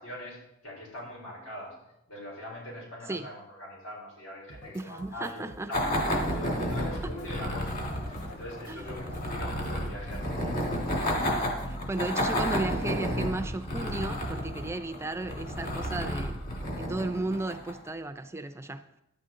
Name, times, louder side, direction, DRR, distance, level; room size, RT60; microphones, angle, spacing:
voice 1, 0.0-5.9 6.3-10.6, left 1 dB, 90° left, 4.2 m, -42 dB
sound 1, 4.5-12.3, left 1 dB, 55° left, 1.2 m, -50 dB
voice 2, 4.7-5.7 8.7-8.9 11.3-16.4 16.8-19.0, right 2 dB, 15° right, 0.4 m, -34 dB
sound 2, 5.7-17.9, equal, 40° left, 1.8 m, -31 dB
12.0 x 9.3 x 3.7 m
head